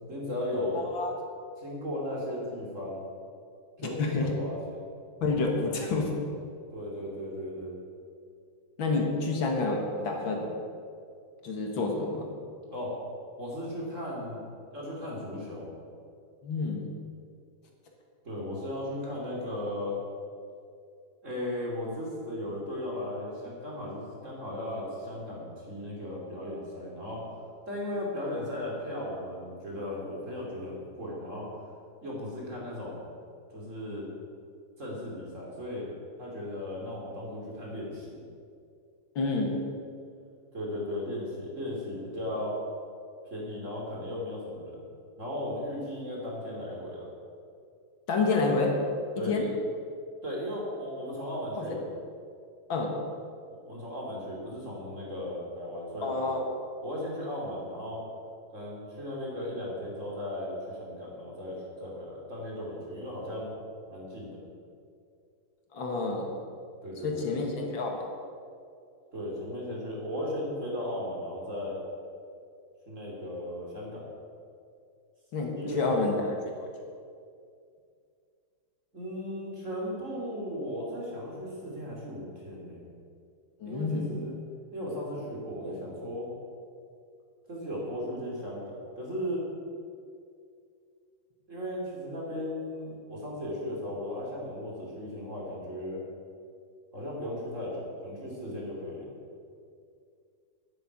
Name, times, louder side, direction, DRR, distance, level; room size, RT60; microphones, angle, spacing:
voice 1, 0.1-0.8 1.6-3.0 3.8-4.8 6.7-7.8 12.7-13.0 13.4-14.4 14.7-15.7 18.2-20.0 21.2-27.3 27.7-31.5 32.0-33.1 33.5-34.1 34.8-35.9 36.2-38.2 40.5-42.6 43.2-44.8 45.2-47.1 49.2-49.5 50.2-51.9 53.6-56.4 56.8-58.1 58.5-63.5 63.9-64.4 66.8-67.3 69.1-71.8 72.9-74.0 75.6-76.3 78.9-82.8 83.6-84.4 84.7-86.3 87.5-89.4 91.5-96.0 96.9-99.1, left 1 dB, 35° right, -3 dB, 3.3 m, -36 dB
voice 2, 0.7-1.1 3.8-4.3 5.2-6.1 8.8-10.5 11.4-12.3 16.4-16.9 39.2-39.6 48.1-48.8 49.2-49.5 51.6-51.7 52.7-52.9 56.0-56.5 65.7-66.3 67.0-68.1 75.3-76.1 76.6-76.7 83.6-84.2, left 3 dB, 70° left, 1 dB, 2.4 m, -28 dB
10.5 x 8.3 x 9.2 m, 2.4 s
omnidirectional pair, 2.3 m